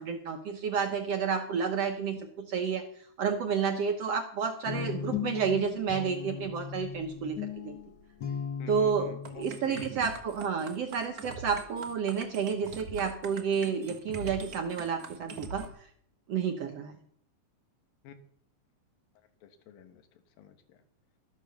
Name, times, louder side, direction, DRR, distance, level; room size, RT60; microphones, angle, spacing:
voice 1, 0.0-2.8 3.2-7.8 8.7-15.7 16.3-16.9, right 6 dB, 70° right, 6 dB, 1.5 m, -30 dB
Guitar, 4.6-9.8, left 7 dB, 60° left, 1.1 m, -37 dB
voice 2, 8.6-9.9 18.0-18.2 19.4-20.1 20.4-20.8, left 8 dB, 80° left, 8 dB, 3.0 m, -49 dB
sound 1, 9.2-15.7, right 3 dB, 90° right, 0.8 m, -43 dB
13.0 x 9.9 x 6.5 m, 0.64 s
omnidirectional pair, 4.0 m